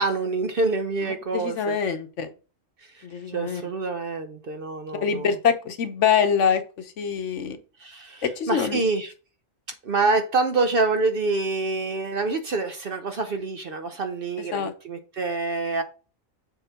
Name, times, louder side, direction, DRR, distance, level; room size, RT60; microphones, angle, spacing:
voice 1, 0.0-1.8 2.9-5.3 7.8-9.1 9.8-15.8, right 3 dB, 55° right, 0.7 m, -26 dB
voice 2, 1.0-2.3 3.0-3.6 5.0-7.6 8.2-8.8 14.5-14.7, left 7 dB, 65° left, 1.1 m, -25 dB
7.0 x 3.7 x 4.4 m
omnidirectional pair, 1.4 m